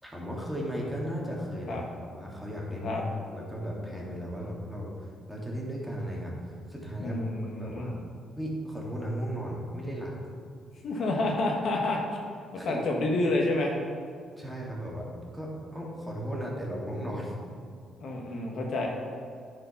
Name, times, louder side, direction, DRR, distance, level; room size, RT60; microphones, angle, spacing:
voice 1, 0.0-3.0 3.3-6.3 6.7-7.2 7.6-8.0 8.4-10.1 12.5-12.8 14.4-15.1 15.3-17.3, equal, ahead, -4 dB, 2.3 m, -36 dB
voice 2, 7.0-7.9 10.8-12.2 12.6-13.8 18.0-18.9, left 2 dB, 65° left, 0 dB, 1.4 m, -29 dB
9.9 x 5.1 x 5.8 m, 2.2 s
cardioid pair, 90°, 0 cm